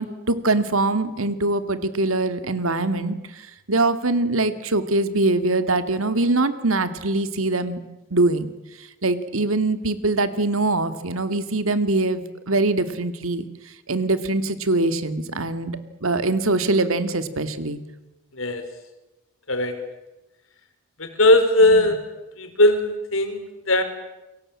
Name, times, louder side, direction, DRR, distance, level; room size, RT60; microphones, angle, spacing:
voice 1, 0.0-3.2 3.7-7.8 8.1-8.5 9.0-13.5 13.9-17.8 21.6-21.9, right 2 dB, 90° right, 11 dB, 2.3 m, -23 dB
voice 2, 21.0-22.0 22.4-23.8, left 1 dB, 80° left, 7 dB, 4.7 m, -18 dB
29.5 x 22.5 x 8.8 m, 1.0 s
head